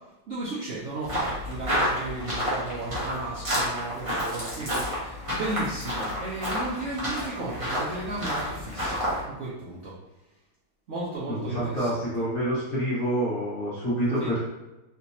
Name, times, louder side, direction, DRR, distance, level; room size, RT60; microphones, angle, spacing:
voice 1, 0.3-9.9 10.9-12.0 14.2-14.3, right 2 dB, 60° right, -8 dB, 0.8 m, -34 dB
sound 1, 1.0-9.2, equal, 25° right, 0.7 m, -30 dB
voice 2, 11.3-14.5, right 1 dB, 35° left, -9 dB, 1.3 m, -27 dB
3.3 x 2.9 x 2.7 m, 1.0 s
omnidirectional pair, 1.8 m